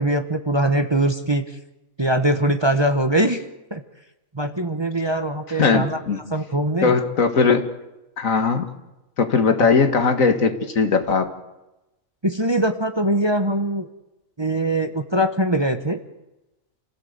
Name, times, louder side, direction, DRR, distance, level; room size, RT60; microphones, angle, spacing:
voice 1, 0.0-1.4 2.0-3.4 3.7-3.8 4.3-6.0 6.3-6.9 9.6-9.7 12.2-13.9 14.4-16.0, right 1 dB, 20° right, 7 dB, 1.1 m, -22 dB
voice 2, 5.6-6.2 6.8-7.7 8.2-8.7 9.2-11.3, left 5 dB, 70° left, 7 dB, 2.1 m, -19 dB
29.0 x 16.0 x 8.1 m, 1.0 s
omnidirectional pair, 1.5 m